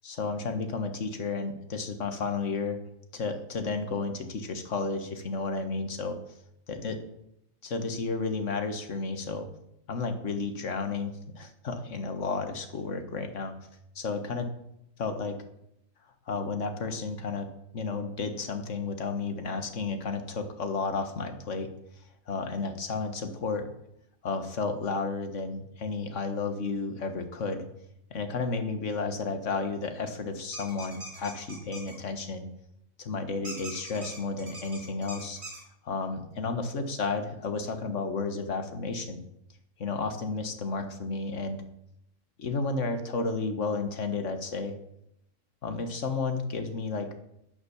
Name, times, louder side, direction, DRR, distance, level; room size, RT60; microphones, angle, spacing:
voice 1, 0.0-2.8 3.1-6.2 6.7-7.0 7.6-9.5 9.9-13.6 14.0-14.5 15.0-15.4 16.3-17.5 17.7-21.7 22.3-23.7 24.2-27.6 28.1-32.5 33.0-35.4 35.8-39.2 39.8-41.6 42.4-44.7 45.6-47.2, left 4 dB, 65° left, 7 dB, 1.8 m, -32 dB
sound 1, 30.5-31.9 33.4-35.6, right 1 dB, 50° right, 3.6 m, -42 dB
10.5 x 10.0 x 7.1 m, 0.79 s
omnidirectional pair, 1.4 m